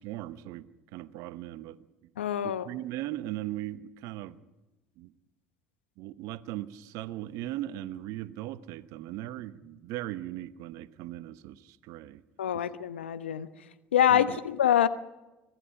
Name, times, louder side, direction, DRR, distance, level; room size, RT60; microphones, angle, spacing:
voice 1, 0.0-1.8 2.4-4.4 5.0-5.1 6.0-12.2 12.5-12.6 14.1-14.4, right 14 dB, 65° right, 14 dB, 1.1 m, -38 dB
voice 2, 2.2-2.7 12.4-13.5 13.9-14.9, left 10 dB, 85° left, 12 dB, 1.0 m, -25 dB
25.5 x 19.5 x 5.9 m, 1.1 s
hypercardioid pair, 65°, 6 cm